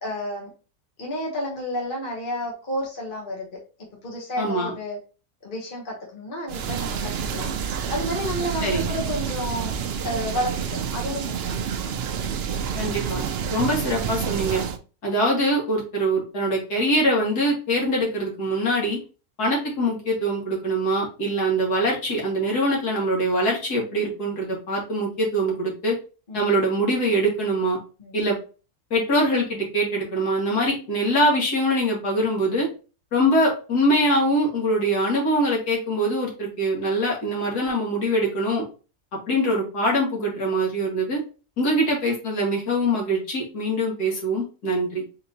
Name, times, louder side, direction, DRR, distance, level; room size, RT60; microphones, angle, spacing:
voice 1, 0.0-0.5 1.0-3.5 4.0-5.0 5.4-7.5 7.9-9.7 10.0-11.7 26.3-26.4 28.0-28.2, equal, 35° left, -1 dB, 1.2 m, -31 dB
voice 2, 4.4-4.7 8.6-8.8 12.8-13.2 13.5-14.6 15.0-19.0 19.4-25.9 26.3-27.8 28.1-28.4 28.9-32.7 33.1-38.6 39.3-41.2 41.6-45.0, equal, 70° left, -2 dB, 2.4 m, -23 dB
sound 1, 6.5-14.8, right 7 dB, 80° right, 0.5 m, -28 dB
4.7 x 3.7 x 2.8 m, 0.34 s
omnidirectional pair, 1.7 m